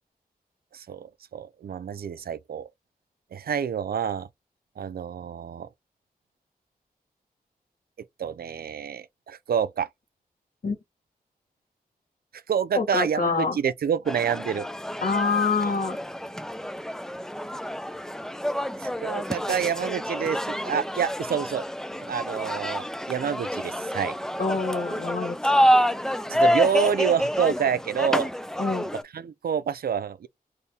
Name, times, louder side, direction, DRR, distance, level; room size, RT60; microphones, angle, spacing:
voice 1, 0.7-2.7 3.3-4.3 4.8-5.7 8.2-9.9 12.5-14.7 18.8-21.7 22.0-24.1 26.3-28.3 29.1-30.3, right 8 dB, 80° right, 0.4 m, -28 dB
voice 2, 12.7-13.6 15.0-16.0 24.4-25.5 28.6-28.9, left 4 dB, 65° left, 1.5 m, -26 dB
sound 1, 14.1-29.0, equal, 5° left, 0.3 m, -27 dB
2.8 x 2.7 x 3.5 m
wide cardioid pair, 80°, 16 cm